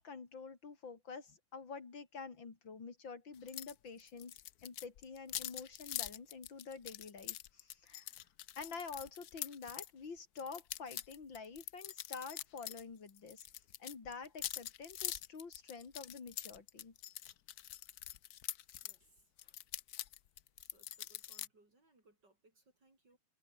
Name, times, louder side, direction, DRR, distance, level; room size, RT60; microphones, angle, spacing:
voice 1, 0.0-8.2 8.6-17.0 19.4-19.5, left 5 dB, 80° left, 3.8 m, -48 dB
sound 1, 3.5-3.7 4.0-9.9 10.4-12.8 13.1-19.0 19.4-21.5, left 12 dB, 60° left, 1.2 m, -45 dB
voice 2, 18.8-19.3 20.6-23.2, right 2 dB, 65° right, 7.3 m, -69 dB
omnidirectional pair, 2.0 m